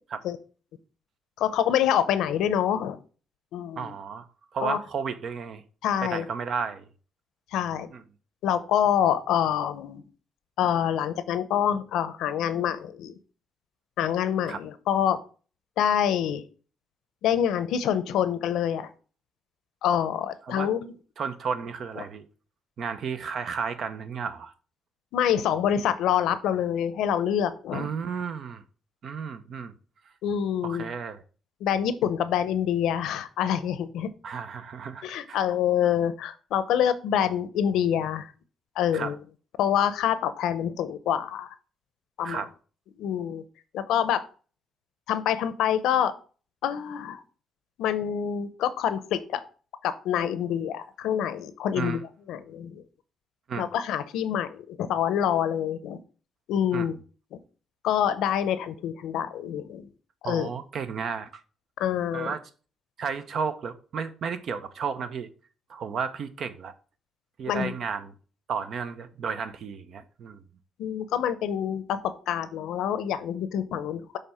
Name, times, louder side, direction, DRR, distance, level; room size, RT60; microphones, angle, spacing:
voice 1, 1.4-3.0 3.5-3.9 4.6-4.8 5.8-6.3 7.5-7.9 8.4-10.0 10.6-13.2 14.0-15.2 15.8-16.4 17.2-18.9 19.8-20.9 25.1-27.9 30.2-30.9 31.6-34.1 35.0-38.3 38.8-39.2 39.6-41.5 42.2-42.4 43.0-43.4 43.7-44.2 45.1-46.1 46.6-47.2 47.8-49.4 49.8-52.0 52.3-52.8 53.6-56.0 56.5-57.0 57.3-57.4 57.8-59.9 60.2-60.5 61.8-62.3 67.5-67.7 70.8-74.2, left 9 dB, 85° left, 13 dB, 0.6 m, -26 dB
voice 2, 3.8-4.3 4.5-5.6 6.0-6.9 7.9-8.0 14.5-14.6 20.5-20.7 21.2-22.2 22.8-24.5 27.7-28.6 29.0-29.7 30.6-31.2 34.2-35.4 38.9-39.1 42.2-42.5 51.7-52.0 53.5-53.6 56.7-56.9 60.2-61.4 62.1-62.4 63.0-65.3 65.7-66.7 67.4-68.1 68.5-70.4, right 6 dB, 60° right, 11 dB, 0.7 m, -33 dB
6.6 x 3.4 x 5.5 m, 0.39 s
cardioid pair, 90°, 0 cm